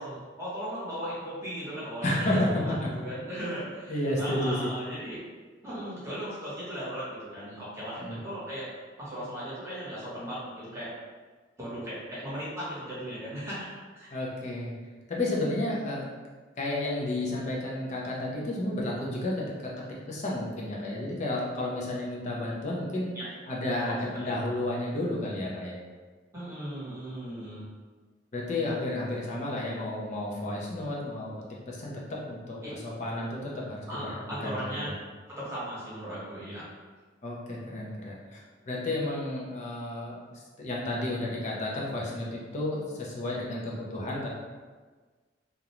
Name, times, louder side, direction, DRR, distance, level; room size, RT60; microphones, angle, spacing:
voice 1, 0.0-2.2 2.4-5.2 5.6-8.7 9.0-10.9 11.6-14.1 23.1-23.3 24.1-24.3 26.3-27.6 32.6-32.7 33.9-34.9 35.3-36.6, equal, 15° right, -10 dB, 1.0 m, -37 dB
voice 2, 2.0-2.8 3.9-4.7 8.0-8.2 14.1-14.7 15.1-16.0 16.6-19.7 20.1-23.1 23.5-25.8 28.3-31.3 31.7-34.9 37.2-44.3, left 1 dB, 40° left, -4 dB, 0.6 m, -32 dB
2.5 x 2.2 x 3.0 m, 1.4 s
head